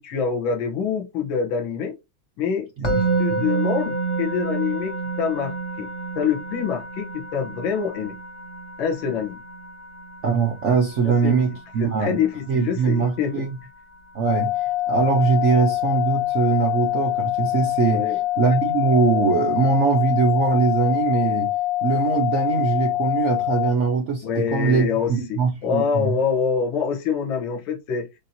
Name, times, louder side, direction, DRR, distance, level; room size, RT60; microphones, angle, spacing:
voice 1, 0.0-2.0 2.4-2.7 2.9-5.9 6.2-8.1 8.8-9.4 11.0-11.4 11.8-13.4 17.9-18.2 24.2-28.1, left 6 dB, 75° left, 1.7 m, -25 dB
Musical instrument, 2.8-13.9, right 4 dB, 30° left, 0.8 m, -30 dB
voice 2, 2.8-3.4 10.2-12.2 12.5-13.6 14.1-18.1 18.4-21.5 21.8-26.2, right 5 dB, 70° right, 0.7 m, -22 dB
sound 1, 14.2-23.7, left 15 dB, 5° left, 0.4 m, -24 dB
7.1 x 2.7 x 2.7 m
omnidirectional pair, 2.2 m